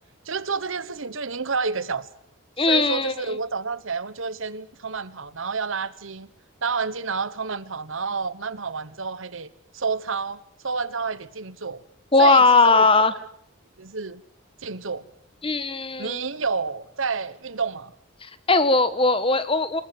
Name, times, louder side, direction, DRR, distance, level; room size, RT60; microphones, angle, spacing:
voice 1, 0.2-2.1 2.6-6.3 6.6-11.8 12.2-13.1 13.8-14.2 14.6-15.1 16.0-17.9, right 5 dB, 75° right, 1.2 m, -29 dB
voice 2, 2.6-3.4 12.1-13.1 15.4-16.2 18.2-19.8, left 3 dB, 25° left, 1.5 m, -19 dB
27.0 x 20.0 x 7.8 m
head